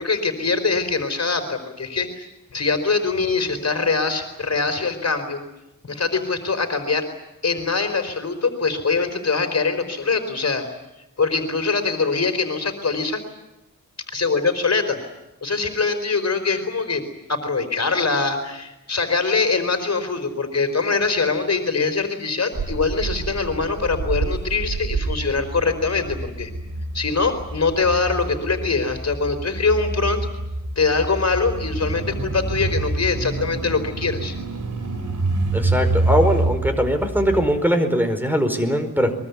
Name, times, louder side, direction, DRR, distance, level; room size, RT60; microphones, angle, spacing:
voice 1, 0.0-5.4 5.9-7.1 7.4-10.6 11.2-13.2 14.1-15.0 15.4-17.0 17.3-26.5 26.9-30.2 30.8-34.3, left 4 dB, 50° left, 7 dB, 4.5 m, -23 dB
sound 1, 22.5-37.5, right 2 dB, 60° right, 4.3 m, -27 dB
voice 2, 35.5-39.1, equal, 5° right, 7 dB, 4.9 m, -21 dB
23.0 x 23.0 x 9.6 m, 0.91 s
wide cardioid pair, 65°, 33 cm